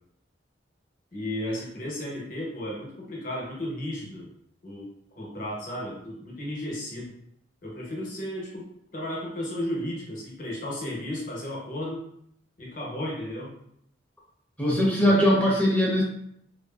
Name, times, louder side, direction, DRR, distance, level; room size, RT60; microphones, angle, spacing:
voice 1, 1.1-4.3 4.6-7.1 7.6-8.6 8.9-12.0 12.6-13.5 15.0-15.3, left 1 dB, 45° left, -3 dB, 0.8 m, -34 dB
voice 2, 14.6-16.0, equal, 10° left, -4 dB, 0.5 m, -21 dB
2.8 x 2.5 x 2.2 m, 0.72 s
head